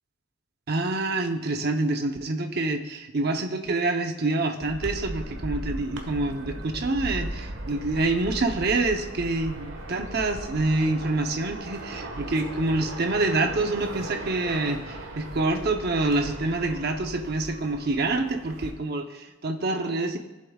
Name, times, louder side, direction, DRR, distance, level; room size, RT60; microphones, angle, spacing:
voice 1, 0.7-20.2, right 2 dB, 55° right, 5 dB, 0.8 m, -27 dB
sound 1, 4.6-18.7, right 1 dB, 85° right, 1.3 m, -37 dB
15.5 x 7.5 x 2.4 m, 1.1 s
head